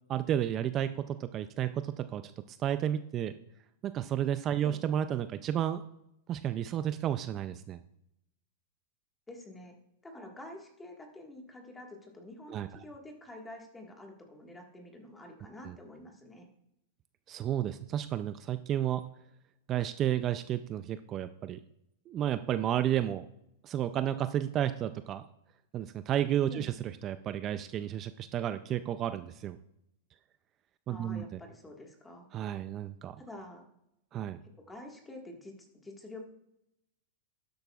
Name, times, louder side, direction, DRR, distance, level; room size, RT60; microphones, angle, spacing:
voice 1, 0.1-2.2 2.5-3.3 3.8-5.8 6.3-7.8 12.5-12.7 15.6-15.8 17.3-19.0 19.7-21.6 22.1-23.2 23.6-25.2 25.7-29.6 30.9-31.4 32.3-33.2 34.1-34.4, right 10 dB, 30° right, 11 dB, 0.4 m, -32 dB
voice 2, 9.3-9.8 10.0-16.5 26.5-26.7 30.9-32.3 33.2-33.6 34.7-36.2, left 1 dB, 10° left, 2 dB, 1.6 m, -48 dB
12.5 x 10.0 x 2.4 m, 0.82 s
supercardioid pair, 145°, 0 cm